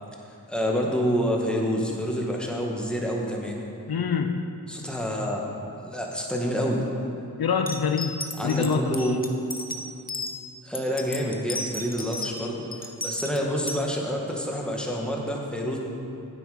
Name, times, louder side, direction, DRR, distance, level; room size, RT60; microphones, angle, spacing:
voice 1, 0.5-3.6 4.7-6.8 8.4-9.1 10.6-15.8, equal, ahead, -2 dB, 1.7 m, -28 dB
voice 2, 3.9-4.6 7.4-9.1, left 5 dB, 70° left, 6 dB, 0.6 m, -26 dB
sound 1, 7.7-10.3 10.7-12.4 12.7-13.8, left 2 dB, 25° left, 0.9 m, -34 dB
9.1 x 8.2 x 5.1 m, 2.7 s
cardioid pair, 45°, 38 cm